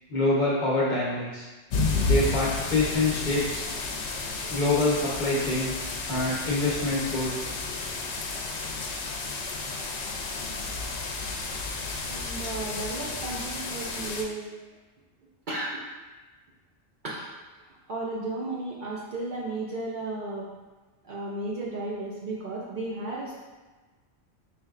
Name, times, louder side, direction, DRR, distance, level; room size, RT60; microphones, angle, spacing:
voice 1, 0.1-1.5 2.0-3.7 4.5-7.4, left 2 dB, 45° left, -6 dB, 1.0 m, -26 dB
sound 1, 1.7-14.2, left 3 dB, 80° left, 0.9 m, -31 dB
voice 2, 12.1-14.4 15.5-15.7 17.0-17.3 17.9-20.5 21.0-23.4, right 2 dB, 55° right, -5 dB, 0.7 m, -34 dB
4.3 x 3.3 x 2.4 m, 1.3 s
omnidirectional pair, 1.1 m